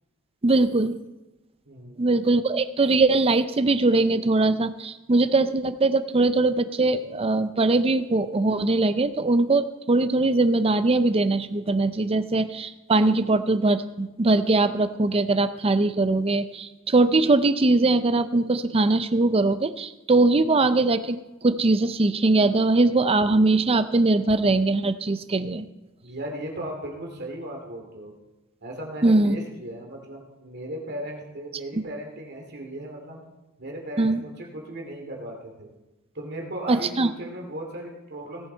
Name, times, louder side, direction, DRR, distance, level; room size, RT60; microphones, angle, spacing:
voice 1, 0.4-1.0 2.0-21.2 21.4-25.7 29.0-29.4 34.0-34.2 36.7-37.1, right 2 dB, 30° right, 11 dB, 0.6 m, -21 dB
voice 2, 1.7-2.1 26.0-28.1 28.6-33.2 33.6-35.7 36.1-38.5, right 1 dB, 55° right, 0 dB, 2.6 m, -36 dB
18.0 x 7.5 x 4.5 m, 1.0 s
head